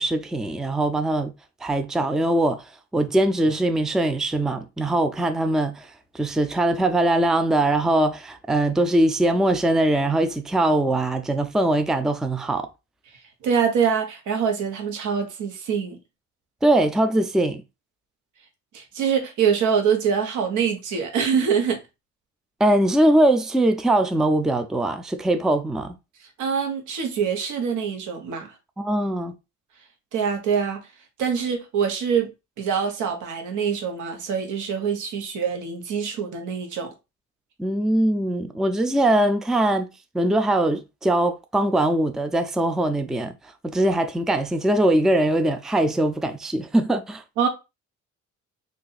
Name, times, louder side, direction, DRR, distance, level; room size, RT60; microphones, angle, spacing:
voice 1, 0.0-1.3 1.6-2.7 2.9-5.9 6.1-12.7 16.6-17.6 22.6-26.0 28.8-29.4 37.6-43.3 43.6-47.2, right 1 dB, ahead, 0.3 m, -21 dB
voice 2, 13.4-16.0 18.7-21.8 26.4-28.5 30.1-30.8 31.2-32.3 32.6-36.9 47.4-47.5, right 7 dB, 80° right, 1.0 m, -24 dB
2.6 x 2.5 x 4.0 m
cardioid pair, 90°, 30 cm